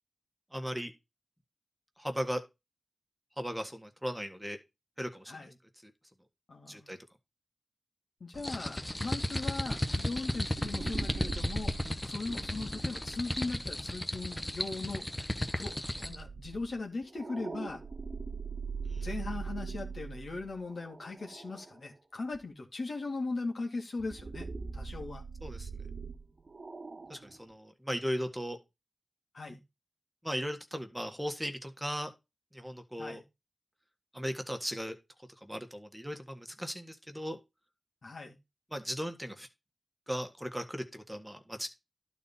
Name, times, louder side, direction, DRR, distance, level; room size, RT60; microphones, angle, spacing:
voice 1, 0.5-0.9 2.0-2.4 3.4-4.6 5.0-5.4 5.8-5.9 6.7-7.0 18.8-19.1 25.4-25.7 27.1-28.6 30.2-32.1 32.5-33.2 34.1-35.0 35.4-37.4 38.7-39.5 40.1-41.7, equal, 10° right, 1.8 m, -37 dB
voice 2, 6.5-6.9 8.2-15.2 15.5-17.8 19.0-25.2 29.3-29.6 33.0-33.2 38.0-38.4, left 3 dB, 75° left, 2.3 m, -39 dB
sound 1, 8.3-16.2, left 1 dB, 15° left, 1.0 m, -35 dB
sound 2, 10.5-14.7 15.9-21.9 22.3-22.4 24.0-27.4, right 4 dB, 60° right, 1.0 m, -42 dB
11.5 x 4.3 x 5.5 m
cardioid pair, 55°, 0 cm